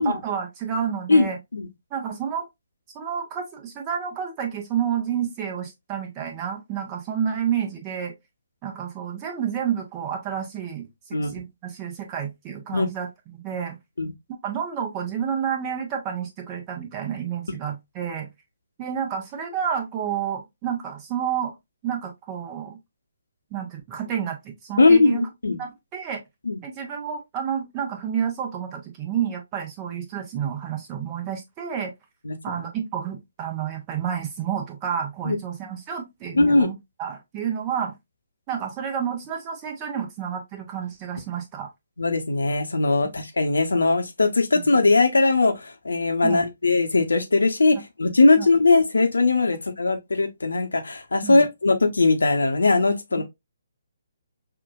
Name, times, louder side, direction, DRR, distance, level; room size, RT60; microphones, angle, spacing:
voice 1, 0.0-1.4 1.9-2.5 2.9-8.1 8.6-13.8 14.4-18.3 18.8-21.5 21.8-22.8 23.5-25.2 25.6-26.2 26.6-31.9 32.4-37.9 38.5-41.7 44.5-44.7 46.2-46.4 47.7-47.8 48.4-48.5 51.2-51.4, right 8 dB, 20° right, 0.9 m, -30 dB
voice 2, 1.1-1.7 11.1-11.3 12.7-12.9 14.0-14.1 24.8-25.6 26.5-26.6 32.2-32.4 35.2-35.4 36.3-36.7 42.0-53.2, left 3 dB, 65° left, 0.9 m, -20 dB
5.7 x 2.5 x 2.4 m
figure-of-eight pair, 135°, 0 cm